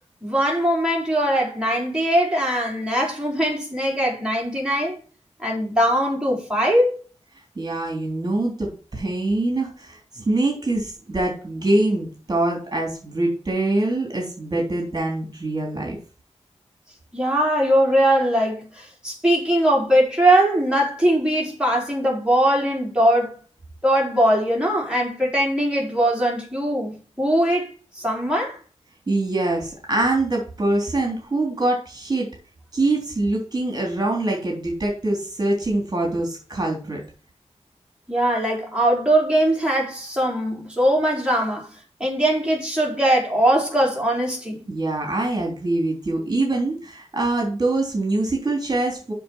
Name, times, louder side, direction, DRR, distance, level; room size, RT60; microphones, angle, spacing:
voice 1, 0.2-5.0 5.4-7.0 17.1-23.4 23.8-28.6 38.1-41.7 42.0-44.6, right 1 dB, 10° right, 4.3 m, -21 dB
voice 2, 7.6-16.0 29.1-32.3 32.7-37.0 44.7-49.1, right 2 dB, 35° right, 3.5 m, -24 dB
7.6 x 6.5 x 6.2 m
wide cardioid pair, 90°, 12 cm